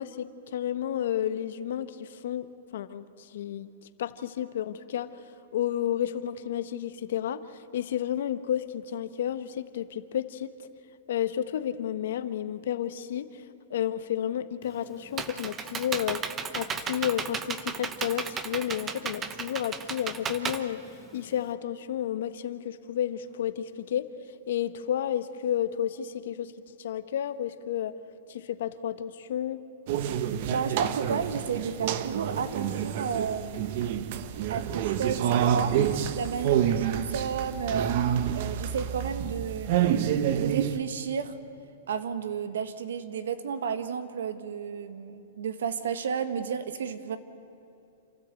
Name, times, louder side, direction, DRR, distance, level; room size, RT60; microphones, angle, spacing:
voice 1, 0.0-3.7 4.0-5.1 5.5-10.5 11.1-13.4 13.7-16.2 16.5-20.8 21.1-24.1 24.5-26.5 26.8-27.9 28.3-29.6, left 10 dB, 65° left, 12 dB, 1.1 m, -31 dB
Computer keyboard, 14.6-21.5, right 6 dB, 15° right, 0.8 m, -35 dB
sound 1, 29.9-40.8, right 9 dB, 45° right, 0.9 m, -28 dB
voice 2, 30.5-33.7 34.5-37.9 38.3-41.4 41.9-47.2, right 6 dB, 80° right, 11 dB, 1.6 m, -32 dB
28.0 x 13.5 x 8.4 m, 2.8 s
hypercardioid pair, 160°, 0 cm